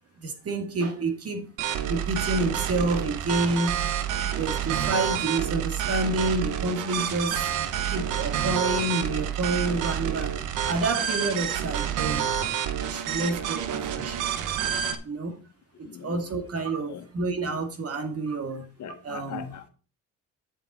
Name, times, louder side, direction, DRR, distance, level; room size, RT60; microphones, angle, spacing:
voice 1, 0.2-1.5 1.9-3.8 4.4-7.5 7.9-10.3 10.6-14.3 15.0-15.4 15.8-18.7 19.0-19.5, right 2 dB, 50° right, 2.4 m, -29 dB
sound 1, 1.6-15.0, right 9 dB, 85° right, 1.1 m, -28 dB
voice 2, 15.8-16.2 16.9-17.0 18.8-19.7, left 9 dB, 65° left, 1.4 m, -40 dB
9.8 x 7.3 x 4.4 m
cardioid pair, 90°, 30 cm